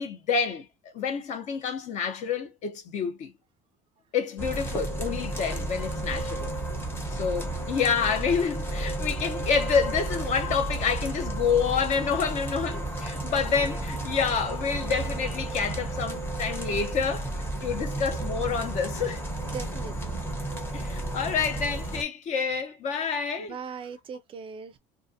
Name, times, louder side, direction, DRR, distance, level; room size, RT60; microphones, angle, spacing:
voice 1, 0.0-3.3 4.1-6.5 7.1-17.3 17.6-19.2 20.7-23.6, left 6 dB, 50° left, 0.9 m, -28 dB
sound 1, 4.4-22.0, right 2 dB, 15° left, 0.9 m, -32 dB
voice 2, 19.4-20.2 23.4-24.8, right 6 dB, 35° right, 0.4 m, -40 dB
2.5 x 2.4 x 2.7 m
cardioid pair, 125°, 16 cm